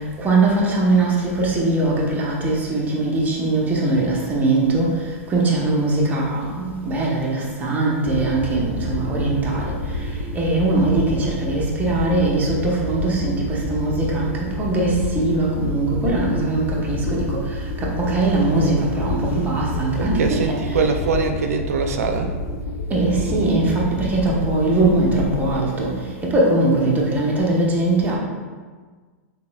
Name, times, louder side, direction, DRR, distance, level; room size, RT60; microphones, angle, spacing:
voice 1, 0.2-4.9 5.3-9.7 10.3-17.4 17.8-20.8 22.9-25.9 26.2-28.2, right 2 dB, 20° right, -4 dB, 0.9 m, -21 dB
sound 1, 8.0-25.5, left 1 dB, 75° left, 0.6 m, -28 dB
voice 2, 20.0-22.3, right 4 dB, 80° right, 5 dB, 0.4 m, -23 dB
3.9 x 3.5 x 2.3 m, 1.5 s
hypercardioid pair, 115°, 8 cm